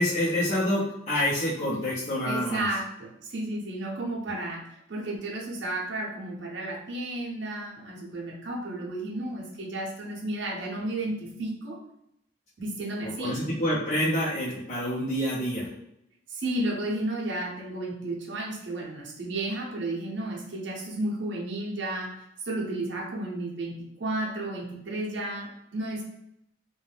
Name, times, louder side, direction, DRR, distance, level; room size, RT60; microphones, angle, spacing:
voice 1, 0.0-2.7 13.0-15.7, left 1 dB, 35° left, -9 dB, 0.6 m, -27 dB
voice 2, 2.3-11.8 12.6-13.4 16.3-22.1 22.4-26.0, right 1 dB, 65° right, -3 dB, 0.6 m, -33 dB
2.5 x 2.2 x 3.3 m, 0.79 s
head